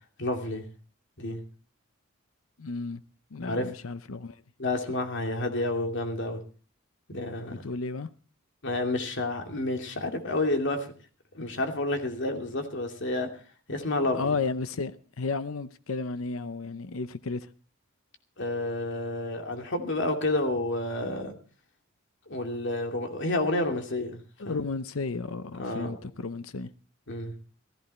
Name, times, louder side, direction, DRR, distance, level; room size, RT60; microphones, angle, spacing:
voice 1, 0.2-0.6 1.2-1.4 3.4-3.7 4.6-6.4 7.1-7.6 8.6-10.9 11.3-13.3 13.7-14.4 18.4-21.3 22.3-24.6 25.6-26.0 27.1-27.3, left 2 dB, 60° left, 2.6 m, -30 dB
voice 2, 2.6-3.0 3.3-4.4 7.5-8.1 14.1-17.5 24.4-26.7, left 4 dB, 85° left, 0.7 m, -33 dB
16.0 x 15.5 x 4.3 m
head